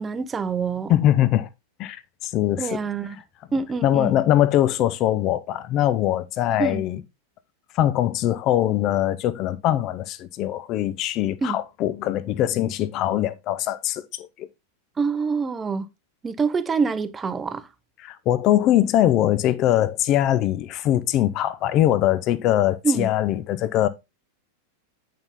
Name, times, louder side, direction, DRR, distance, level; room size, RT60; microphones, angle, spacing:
voice 1, 0.0-0.9 2.6-3.2 3.5-4.2 6.6-6.8 11.4-11.6 15.0-15.9 16.2-17.7 22.8-23.1, right 5 dB, 15° right, 0.6 m, -25 dB
voice 2, 0.9-1.5 1.8-2.8 3.8-7.0 7.7-14.5 18.0-23.9, left 12 dB, 35° left, 0.6 m, -22 dB
9.0 x 5.5 x 3.6 m
figure-of-eight pair, 90°, 0 cm